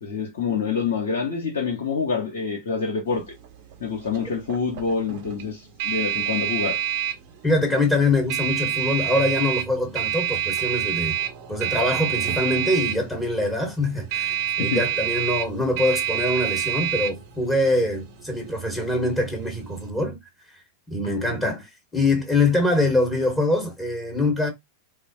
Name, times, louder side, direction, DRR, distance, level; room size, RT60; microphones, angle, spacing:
voice 1, 0.0-3.3 3.8-6.8 14.6-14.8 21.0-21.5, left 5 dB, 65° left, 0.9 m, -27 dB
sound 1, 3.1-19.9, right 10 dB, 50° right, 0.9 m, -28 dB
voice 2, 7.4-11.2 11.5-20.2 20.9-24.5, left 2 dB, 10° left, 1.3 m, -24 dB
4.1 x 2.0 x 2.6 m
figure-of-eight pair, 90°, 0 cm